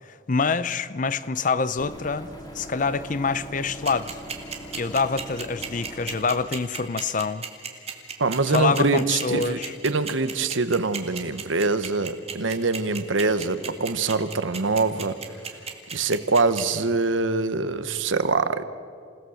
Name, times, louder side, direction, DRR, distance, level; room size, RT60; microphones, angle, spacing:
voice 1, 0.1-2.3 2.5-4.2 4.7-7.4 8.5-9.8, left 4 dB, 40° left, 0.6 m, -26 dB
sound 1, 1.8-6.2, equal, 20° left, 2.4 m, -41 dB
sound 2, 3.9-16.6, right 6 dB, 30° right, 2.1 m, -33 dB
voice 2, 8.2-15.1 15.9-18.6, right 3 dB, 80° right, 1.0 m, -24 dB
28.0 x 17.5 x 6.4 m
head